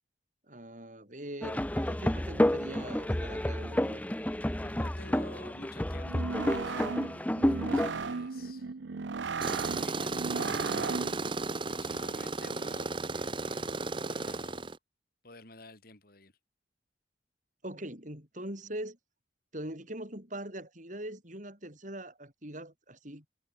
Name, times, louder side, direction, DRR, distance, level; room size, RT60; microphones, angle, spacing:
voice 1, 0.5-4.1 17.6-19.0 19.5-23.2, right 1 dB, 45° right, 7.7 m, -42 dB
sound 1, 1.4-7.9, left 1 dB, 10° left, 0.7 m, -30 dB
voice 2, 4.6-8.7 9.5-14.8 15.2-16.3, left 2 dB, 55° left, 5.6 m, -52 dB
sound 2, 6.0-11.3, right 4 dB, 80° right, 0.7 m, -36 dB
Tools, 9.4-14.8, right 3 dB, 25° right, 1.0 m, -34 dB
head